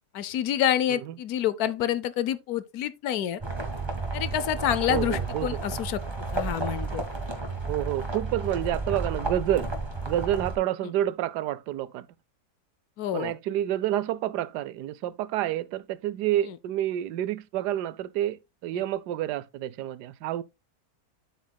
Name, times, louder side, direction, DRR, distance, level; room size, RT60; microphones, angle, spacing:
voice 1, 0.1-3.4 4.1-6.0 6.3-7.0 13.0-13.3, left 11 dB, 70° left, 1.1 m, -27 dB
sound 1, 3.4-10.6, right 3 dB, 15° right, 1.4 m, -32 dB
voice 2, 4.9-5.6 7.7-9.7 10.1-12.1 13.1-20.4, right 12 dB, 85° right, 1.2 m, -29 dB
9.2 x 8.0 x 2.2 m
omnidirectional pair, 1.7 m